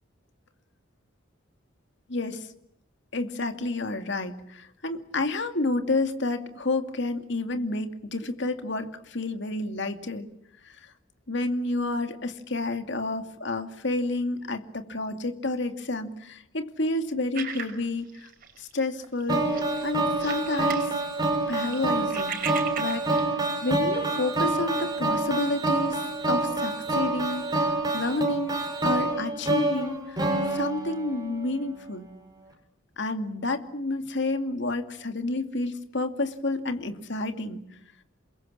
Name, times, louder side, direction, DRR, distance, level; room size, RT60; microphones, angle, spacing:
voice 1, 2.1-2.5 3.1-10.3 10.6-10.9 11.3-18.3 18.6-19.5 19.8-20.9 21.5-22.4 22.8-23.3 23.6-30.2 30.5-32.1 33.0-37.6, left 2 dB, 65° left, 7 dB, 2.4 m, -30 dB
sound 1, 17.3-18.7 19.0-19.2 19.5-20.9 21.2-23.2, right 7 dB, 45° right, 5.7 m, -37 dB
sound 2, 19.3-31.5, right 2 dB, 20° right, 6.2 m, -27 dB
28.0 x 22.5 x 8.8 m, 0.73 s
head